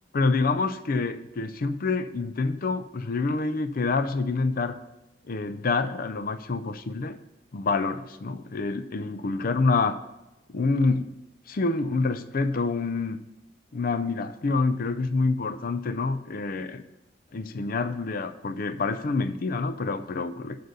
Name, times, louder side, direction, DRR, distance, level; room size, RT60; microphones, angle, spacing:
voice 1, 0.1-4.8 5.3-7.2 7.5-10.0 10.5-11.1 11.5-13.2 13.7-16.8 17.3-20.6, left 3 dB, 50° left, 11 dB, 0.5 m, -27 dB
7.9 x 6.8 x 5.4 m, 0.99 s
head